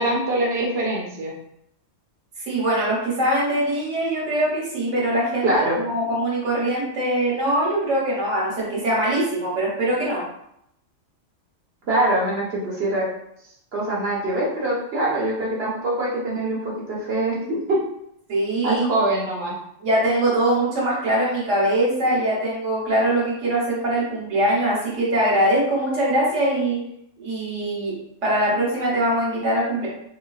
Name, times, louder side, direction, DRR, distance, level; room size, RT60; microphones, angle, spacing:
voice 1, 0.0-1.3 5.4-5.8 11.9-13.1 13.7-17.8 18.6-19.6, right 1 dB, 55° right, -4 dB, 1.2 m, -23 dB
voice 2, 2.5-5.5 5.9-10.2 18.3-18.8 19.8-26.8 27.2-27.9 28.2-29.9, right 1 dB, 70° right, -5 dB, 1.5 m, -22 dB
4.4 x 2.6 x 2.3 m, 0.76 s
omnidirectional pair, 1.3 m